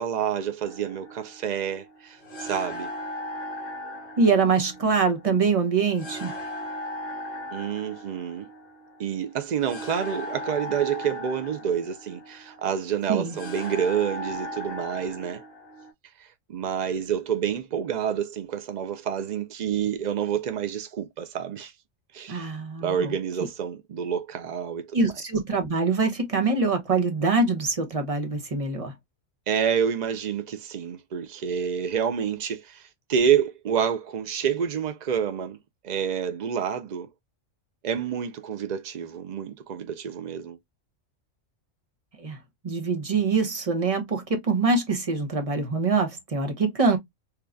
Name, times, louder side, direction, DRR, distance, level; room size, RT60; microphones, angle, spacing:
voice 1, 0.0-2.9 7.5-8.5 9.0-15.4 16.2-21.7 22.1-22.5 22.8-25.0 29.5-35.6 35.8-37.1 37.8-40.6, right 8 dB, 80° right, 0.4 m, -28 dB
sound 1, 0.6-15.9, left 1 dB, 45° left, 1.8 m, -38 dB
voice 2, 4.2-6.3 13.1-13.4 22.3-23.1 24.9-28.9 42.2-42.4 42.6-47.0, right 4 dB, 30° right, 0.9 m, -24 dB
4.4 x 2.3 x 2.4 m
omnidirectional pair, 1.4 m